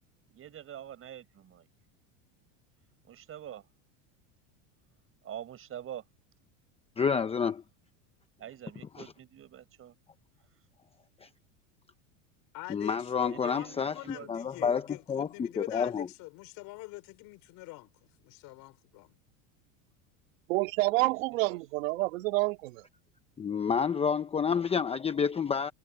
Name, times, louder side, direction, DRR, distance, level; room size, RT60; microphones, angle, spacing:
voice 1, 0.3-1.7 3.0-3.7 5.2-6.0 8.4-9.9 13.2-14.3 21.0-21.6, right 10 dB, 35° right, 7.6 m, -45 dB
voice 2, 7.0-7.6 8.9-9.1 11.2-11.3 12.7-13.9 14.3-16.1 23.4-25.7, left 6 dB, 15° left, 0.8 m, -29 dB
voice 3, 12.5-17.9 18.2-19.1, left 22 dB, 55° left, 3.7 m, -44 dB
voice 4, 20.5-22.9, right 21 dB, 80° right, 3.1 m, -28 dB
supercardioid pair, 135°, 39 cm